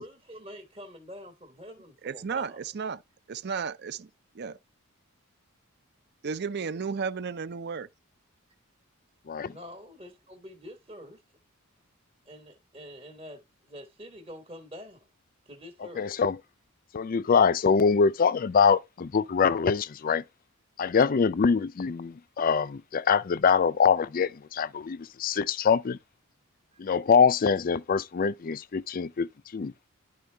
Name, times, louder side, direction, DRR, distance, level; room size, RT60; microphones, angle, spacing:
voice 1, 0.0-2.6 9.5-11.2 12.2-15.1 15.4-16.1 26.7-26.8, equal, 25° right, 1.4 m, -46 dB
voice 2, 2.0-3.0 3.3-4.1 4.3-4.6 6.2-7.9, right 5 dB, 50° right, 0.5 m, -33 dB
voice 3, 16.0-16.4 16.9-20.2 20.8-26.0 26.8-29.7, left 6 dB, 40° left, 0.4 m, -24 dB
11.0 x 4.4 x 3.4 m
head